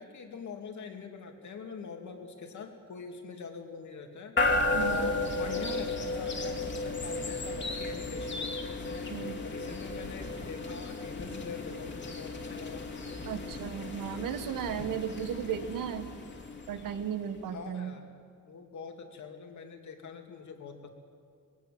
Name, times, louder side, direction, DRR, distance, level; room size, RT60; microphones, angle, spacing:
voice 1, 0.0-4.4 4.9-9.1 9.4-12.8 17.5-18.1 18.5-20.9, left 5 dB, 60° left, 4 dB, 2.6 m, -43 dB
sound 1, 4.4-17.4, left 2 dB, 35° left, 2.5 m, -34 dB
voice 2, 4.7-5.1 9.1-9.4 13.2-16.1 16.7-18.0, right 8 dB, 75° right, 10 dB, 1.4 m, -35 dB
20.5 x 17.5 x 7.8 m, 2.2 s
cardioid pair, 120°, 34 cm